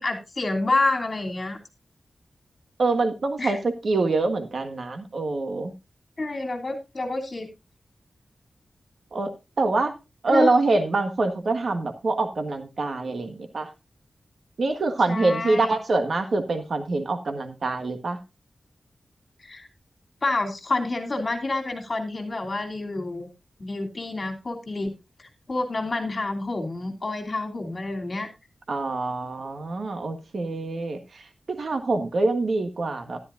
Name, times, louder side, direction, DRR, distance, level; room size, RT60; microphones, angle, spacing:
voice 1, 0.0-1.6 3.4-3.6 6.2-7.5 10.3-10.5 15.1-15.7 19.4-19.7 20.2-23.3 23.6-24.9 25.2-28.3, left 2 dB, 45° left, 4 dB, 2.9 m, -28 dB
voice 2, 2.8-5.7 9.1-9.3 9.6-9.9 10.2-13.7 14.6-18.2 28.7-33.2, right 3 dB, 70° right, 7 dB, 1.6 m, -25 dB
13.0 x 11.5 x 2.5 m, 0.25 s
wide cardioid pair, 85°, 0 cm